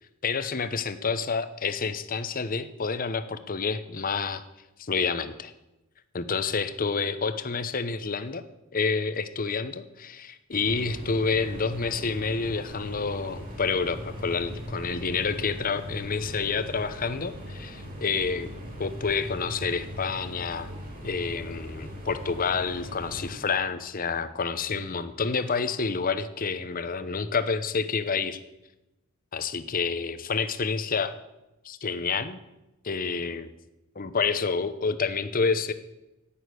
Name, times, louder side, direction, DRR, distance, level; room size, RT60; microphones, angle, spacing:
voice 1, 0.2-4.4 4.8-5.5 6.1-8.4 8.7-18.5 18.8-20.7 21.0-28.4 29.3-31.2 31.6-32.4 32.8-33.5 34.0-35.7, left 5 dB, 40° left, 12 dB, 0.8 m, -28 dB
sound 1, 10.5-23.3, equal, 40° right, 4.9 m, -40 dB
11.0 x 8.8 x 9.5 m, 0.97 s
head